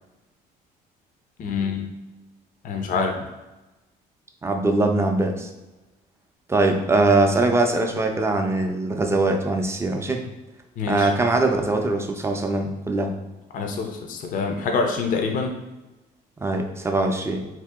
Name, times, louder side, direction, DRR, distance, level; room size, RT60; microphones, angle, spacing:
voice 1, 1.4-1.9 2.6-3.2 10.8-11.1 13.5-15.5, left 4 dB, 55° left, 3 dB, 0.5 m, -25 dB
voice 2, 4.4-5.5 6.5-10.2 10.9-13.1 16.4-17.5, right 2 dB, 15° right, 3 dB, 0.4 m, -22 dB
2.7 x 2.6 x 3.6 m, 1.1 s
cardioid pair, 110°, 17 cm